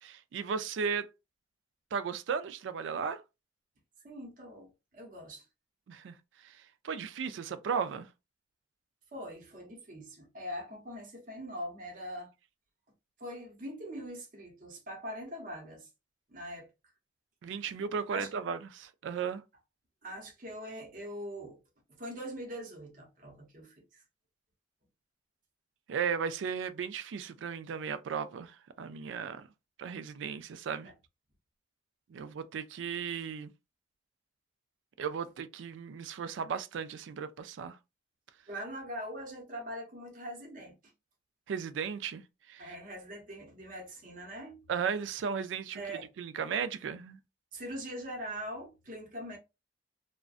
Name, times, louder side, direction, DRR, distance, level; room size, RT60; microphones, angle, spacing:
voice 1, 0.0-1.1 1.9-3.2 5.9-6.1 6.4-6.6 6.8-8.1 17.4-19.4 25.9-29.5 29.8-30.9 32.1-33.5 35.0-37.8 41.5-42.2 42.5-42.7 44.7-47.2, right 6 dB, 85° right, 0.3 m, -35 dB
voice 2, 4.0-5.5 9.1-12.3 13.2-15.9 16.3-16.7 18.1-18.3 20.0-21.6 22.0-24.0 30.8-30.9 32.2-32.3 38.5-40.7 42.6-44.6 45.7-46.1 47.5-49.4, equal, 45° right, 0.8 m, -42 dB
2.4 x 2.1 x 2.4 m
head